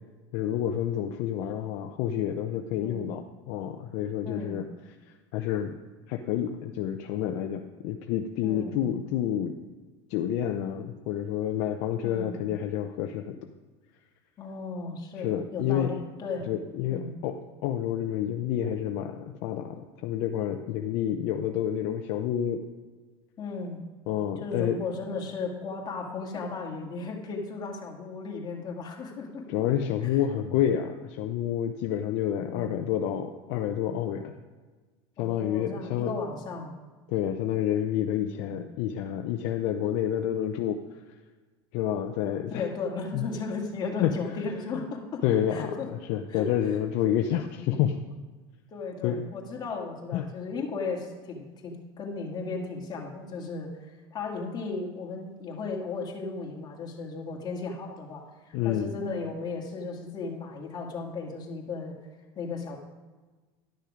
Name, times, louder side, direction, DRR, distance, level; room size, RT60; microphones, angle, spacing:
voice 1, 0.3-4.6 5.3-5.7 6.1-9.6 10.1-13.5 15.2-15.9 16.5-22.6 24.1-24.8 29.5-34.4 35.2-36.1 37.1-40.8 41.7-42.7 43.1-43.3 44.0-44.2 45.2-48.0 49.0-49.2 50.1-50.2 58.5-58.9, left 10 dB, 60° left, 5 dB, 0.7 m, -29 dB
voice 2, 2.8-3.1 4.2-4.6 8.4-8.8 12.0-12.4 14.4-16.5 16.9-17.2 23.4-23.8 24.4-29.5 30.0-30.1 32.4-32.8 35.2-36.7 38.4-38.6 42.5-45.2 45.5-45.9 46.3-46.5 48.7-61.9 62.4-62.8, left 4 dB, 30° left, 0 dB, 2.0 m, -35 dB
11.5 x 6.5 x 5.0 m, 1.3 s
supercardioid pair, 130°, 14 cm